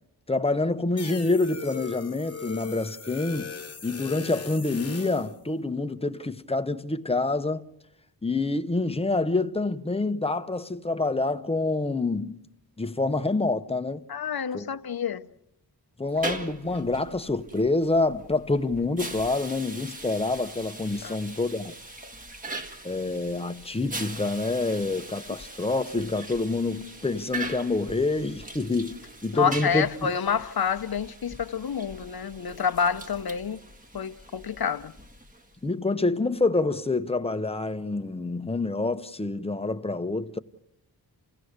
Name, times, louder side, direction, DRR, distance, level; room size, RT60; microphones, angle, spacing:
voice 1, 0.3-3.5 3.8-7.6 8.2-12.4 12.8-14.0 14.5-14.7 16.0-21.7 22.8-29.0 29.2-30.1 35.6-40.4, left 3 dB, 15° left, 0.8 m, -27 dB
sound 1, 1.0-5.3, left 5 dB, 35° left, 1.1 m, -39 dB
voice 2, 14.1-15.3 21.0-21.2 29.3-33.6 33.9-34.9, left 7 dB, 65° left, 0.8 m, -28 dB
sound 2, 16.1-35.7, right 2 dB, 20° right, 1.6 m, -41 dB
29.0 x 17.0 x 6.5 m
wide cardioid pair, 85°, 40 cm